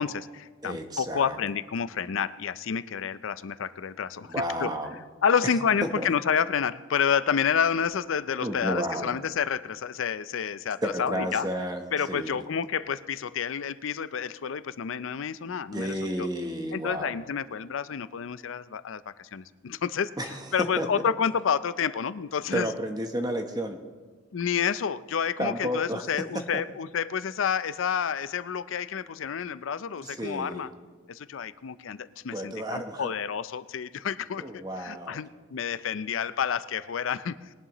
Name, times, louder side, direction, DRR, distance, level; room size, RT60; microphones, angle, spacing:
voice 1, 0.0-4.4 4.6-4.7 5.2-11.5 11.9-16.3 16.7-20.1 20.5-22.7 24.3-30.7 31.1-37.4, left 7 dB, 80° left, 15 dB, 0.5 m, -29 dB
voice 2, 0.6-1.4 4.3-5.0 6.0-6.1 8.4-9.1 10.8-12.4 15.7-17.2 20.2-20.4 20.8-20.9 22.5-23.8 25.4-26.0 30.0-30.7 32.3-33.1 34.4-35.2, right 1 dB, 20° right, 5 dB, 0.9 m, -32 dB
21.5 x 11.0 x 3.0 m, 1.4 s
head